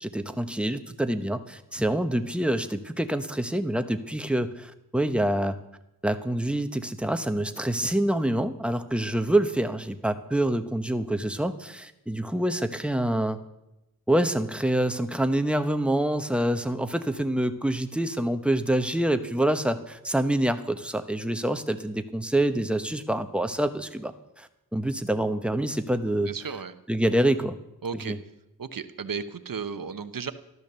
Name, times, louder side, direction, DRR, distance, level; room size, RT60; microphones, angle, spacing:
voice 1, 0.0-5.6 6.0-13.4 14.1-26.3 26.9-27.6 27.9-28.2, right 1 dB, 5° right, 8 dB, 1.0 m, -26 dB
voice 2, 26.3-26.7 27.8-28.1 28.6-30.3, right 6 dB, 60° right, 10 dB, 1.0 m, -34 dB
14.0 x 12.5 x 6.8 m, 0.91 s
wide cardioid pair, 85°, 37 cm